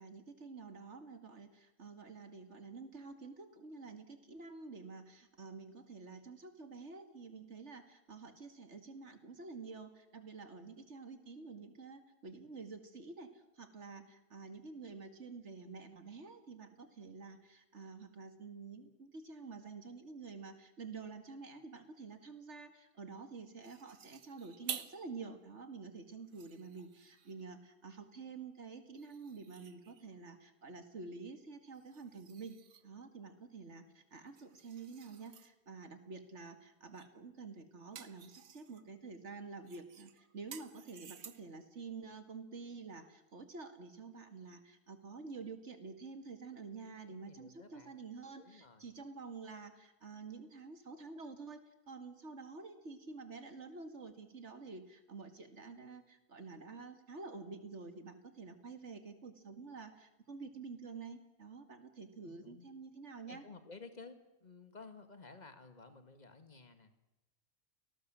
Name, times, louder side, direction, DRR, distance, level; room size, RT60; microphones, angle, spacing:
voice 1, 0.0-63.4, right 4 dB, 55° right, 8 dB, 2.4 m, -49 dB
sound 1, 23.6-25.1 25.6-25.7 26.2-27.5 28.9-30.2 31.7-33.0 34.2-35.5 36.9-37.2 37.5-38.9 39.7-41.6, right 8 dB, 80° right, 1.6 m, -50 dB
voice 2, 47.1-48.0 48.4-48.9 62.2-62.7 63.3-67.1, left 4 dB, 30° left, 9 dB, 2.1 m, -54 dB
29.5 x 18.5 x 7.6 m, 0.95 s
omnidirectional pair, 1.4 m